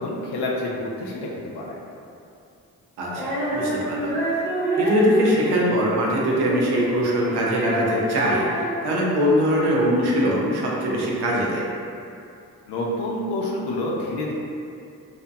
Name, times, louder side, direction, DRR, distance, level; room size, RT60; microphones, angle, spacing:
voice 1, 0.0-1.8 12.7-14.3, left 1 dB, 80° left, -3 dB, 0.5 m, -28 dB
voice 2, 3.0-4.1 4.8-11.6, equal, 80° right, -4 dB, 0.6 m, -22 dB
Female singing, 3.1-9.5, right 1 dB, 5° right, 0.9 m, -27 dB
2.7 x 2.1 x 2.2 m, 2.6 s
supercardioid pair, 40°, 39 cm